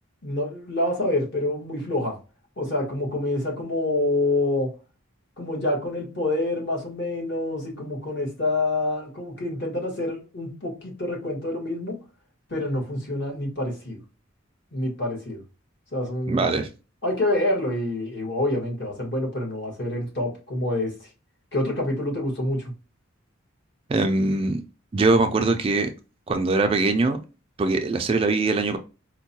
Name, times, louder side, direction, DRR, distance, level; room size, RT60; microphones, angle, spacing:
voice 1, 0.2-2.1 2.6-4.7 5.4-11.9 12.5-14.0 14.7-15.4 15.9-16.4 17.0-20.9 21.5-22.7, left 1 dB, 55° left, -1 dB, 1.4 m, -27 dB
voice 2, 16.3-16.7 23.9-24.6 24.9-25.9 26.3-27.2 27.6-28.8, right 3 dB, 30° right, 7 dB, 0.3 m, -22 dB
4.4 x 2.2 x 2.7 m, 0.32 s
head